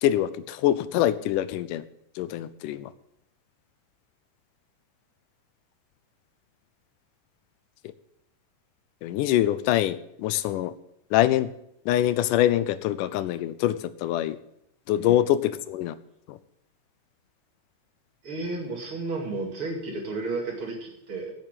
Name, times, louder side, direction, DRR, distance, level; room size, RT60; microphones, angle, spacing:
voice 1, 0.0-1.8 2.2-2.9 9.0-10.7 11.1-11.5 11.9-14.4 14.9-16.0 16.3-16.4, left 13 dB, 90° left, 15 dB, 2.2 m, -24 dB
voice 2, 18.2-21.3, right 3 dB, 45° right, 0 dB, 3.1 m, -32 dB
8.9 x 8.6 x 7.5 m, 0.77 s
omnidirectional pair, 3.6 m